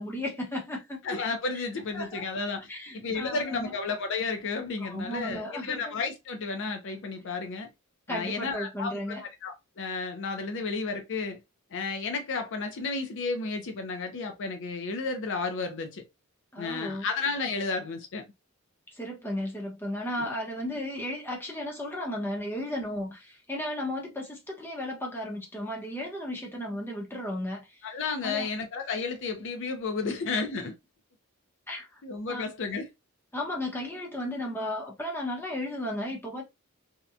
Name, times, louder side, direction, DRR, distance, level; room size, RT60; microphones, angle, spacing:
voice 1, 0.0-1.0 1.5-1.6 1.9-2.3 2.7-3.7 4.8-5.8 8.1-9.2 16.5-17.1 18.9-27.7 28.2-28.5 31.7-31.9 32.3-32.4 33.3-36.4, left 1 dB, 10° left, 0.7 m, -34 dB
voice 2, 1.0-2.6 2.9-7.7 8.1-11.4 11.7-16.0 16.6-18.2 20.2-20.3 27.8-30.7 32.0-32.9, left 4 dB, 60° left, 0.5 m, -32 dB
2.8 x 2.1 x 2.4 m
head